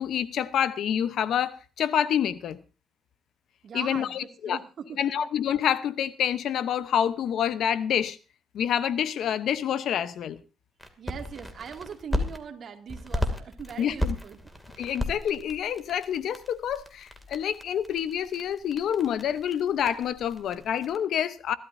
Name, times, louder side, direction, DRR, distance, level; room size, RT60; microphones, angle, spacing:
voice 1, 0.0-2.6 3.7-4.6 5.0-8.2 8.5-10.4 13.8-14.2 14.8-21.6, left 9 dB, 70° left, 0.9 m, -27 dB
voice 2, 3.6-5.1 11.0-14.4, right 7 dB, 55° right, 2.2 m, -41 dB
sound 1, 10.8-12.4 12.9-21.0, left 1 dB, 5° left, 2.5 m, -35 dB
26.5 x 12.5 x 2.7 m
cardioid pair, 90°, 0 cm